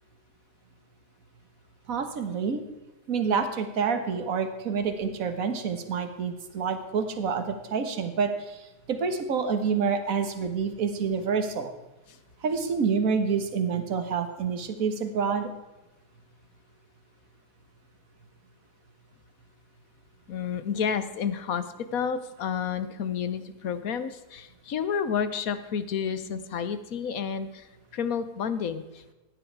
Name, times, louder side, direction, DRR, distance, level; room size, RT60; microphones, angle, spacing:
voice 1, 1.9-2.6 3.1-11.7 12.4-15.5, right 5 dB, 60° right, 8 dB, 1.7 m, -28 dB
voice 2, 20.3-27.7 27.9-29.1, left 7 dB, 65° left, 12 dB, 1.3 m, -30 dB
16.5 x 10.5 x 4.7 m, 1.1 s
omnidirectional pair, 1.7 m